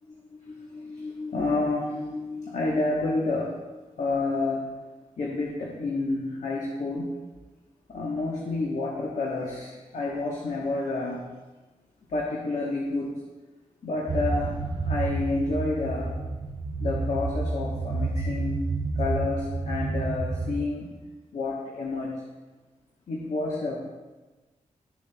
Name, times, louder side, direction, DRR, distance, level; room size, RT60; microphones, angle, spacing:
voice 1, 0.1-3.6 4.0-4.7 5.2-7.1 7.9-11.2 12.1-13.2 13.8-16.1 16.8-18.7 19.0-20.9 21.3-22.2 23.1-23.8, left 2 dB, 65° left, -3 dB, 1.1 m, -29 dB
sound 1, 14.1-20.6, right 3 dB, 35° right, 0.4 m, -29 dB
12.0 x 7.1 x 2.2 m, 1.2 s
wide cardioid pair, 145°, 13 cm